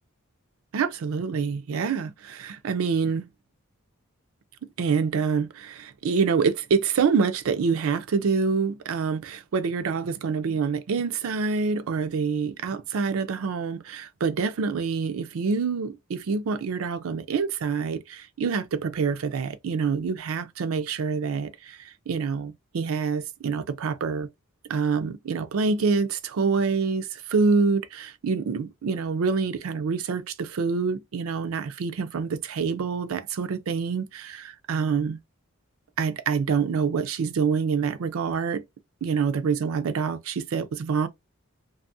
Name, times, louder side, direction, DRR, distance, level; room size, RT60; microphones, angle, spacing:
voice 1, 0.7-3.3 4.8-24.3 24.7-35.2 36.0-38.6 39.0-41.1, right 5 dB, 75° right, 0.4 m, -26 dB
2.6 x 2.3 x 2.6 m
head